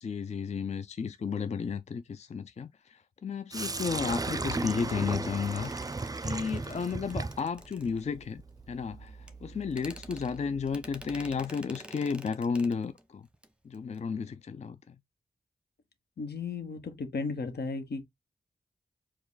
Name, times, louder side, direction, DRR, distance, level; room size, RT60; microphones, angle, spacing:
voice 1, 0.0-6.0 6.2-8.4 8.7-13.3 13.6-15.0, left 5 dB, 40° left, 0.4 m, -33 dB
Sink (filling or washing), 3.5-11.4, right 3 dB, 20° right, 0.4 m, -37 dB
sound 1, 5.7-8.4 9.3-9.4 9.7-13.0 13.3-13.5 13.7-14.0, equal, 5° right, 0.8 m, -49 dB
voice 2, 16.2-18.0, left 4 dB, 80° left, 1.1 m, -35 dB
4.8 x 2.3 x 3.9 m
wide cardioid pair, 65°, 17 cm